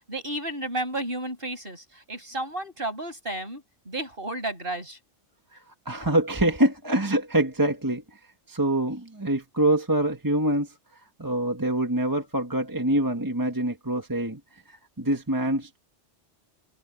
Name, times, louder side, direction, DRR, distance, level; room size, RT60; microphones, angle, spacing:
voice 1, 0.1-5.0, right 1 dB, 50° right, 6.9 m, -32 dB
voice 2, 5.8-8.2 8.5-10.7 11.2-14.4 14.7-15.8, right 1 dB, 15° right, 1.7 m, -25 dB
omnidirectional pair, 1.2 m